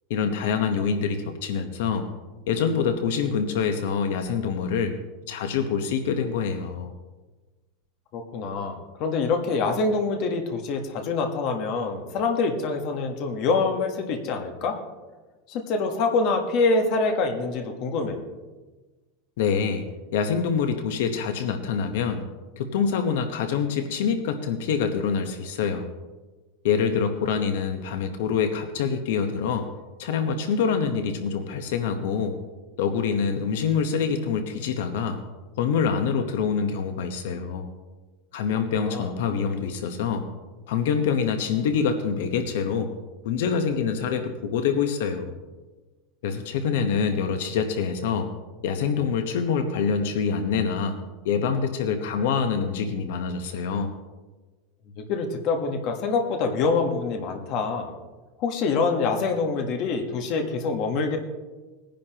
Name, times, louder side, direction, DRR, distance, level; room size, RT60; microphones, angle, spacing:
voice 1, 0.1-2.1 2.5-4.9 5.3-6.9 19.4-22.2 22.6-25.9 26.6-29.7 30.0-32.4 32.8-35.2 35.6-37.7 38.3-40.3 40.7-42.9 43.2-45.4 46.2-48.3 48.6-51.0 51.2-53.9, left 6 dB, 70° left, 7 dB, 1.0 m, -25 dB
voice 2, 8.1-14.8 15.5-18.2 38.7-39.1 55.0-57.9 58.4-61.2, left 4 dB, 40° left, 4 dB, 1.2 m, -25 dB
19.5 x 10.5 x 2.9 m, 1.2 s
supercardioid pair, 175°, 0 cm